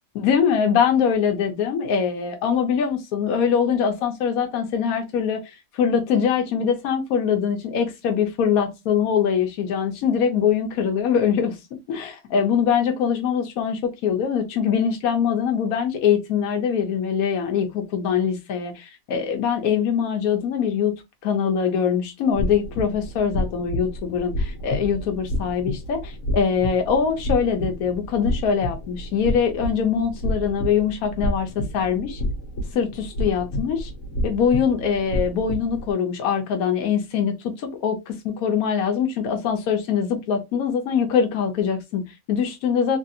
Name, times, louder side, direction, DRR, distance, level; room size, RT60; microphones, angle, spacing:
voice 1, 0.2-11.6 11.9-20.9 21.2-32.2 32.7-33.9 34.2-43.0, left 7 dB, 85° left, 1.1 m, -23 dB
sound 1, 22.3-35.9, equal, 65° left, 1.1 m, -30 dB
3.2 x 2.7 x 2.4 m
omnidirectional pair, 1.5 m